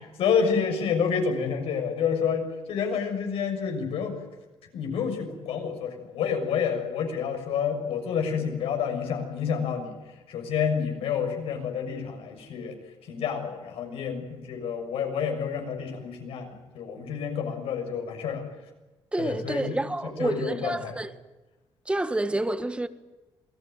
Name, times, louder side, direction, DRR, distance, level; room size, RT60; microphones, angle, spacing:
voice 1, 0.2-4.2 4.7-9.9 10.3-12.7 13.1-18.4 19.2-21.0, left 6 dB, 80° left, 6.6 m, -29 dB
voice 2, 19.1-21.1 21.9-22.9, right 2 dB, 10° right, 1.5 m, -28 dB
27.5 x 20.0 x 9.2 m
cardioid pair, 115°, 10 cm